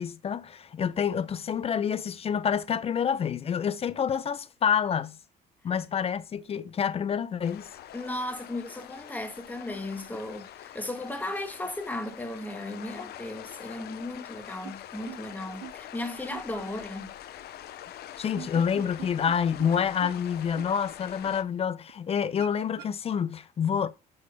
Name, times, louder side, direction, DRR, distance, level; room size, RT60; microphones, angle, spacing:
voice 1, 0.0-5.2 5.6-7.7 18.2-23.9, left 7 dB, 35° left, 0.7 m, -28 dB
sound 1, 7.4-21.4, left 12 dB, 70° left, 0.8 m, -44 dB
voice 2, 7.9-17.1, left 1 dB, 10° left, 1.5 m, -36 dB
sound 2, 14.6-14.7 15.1-15.2 15.6-15.7 16.3-16.4 18.2-19.3 19.6-19.7 20.0-20.1 20.6-20.7 21.3-21.4 21.9-22.0 22.4-22.9, right 14 dB, 80° right, 0.7 m, -41 dB
8.6 x 6.2 x 2.3 m
cardioid pair, 110°, 17 cm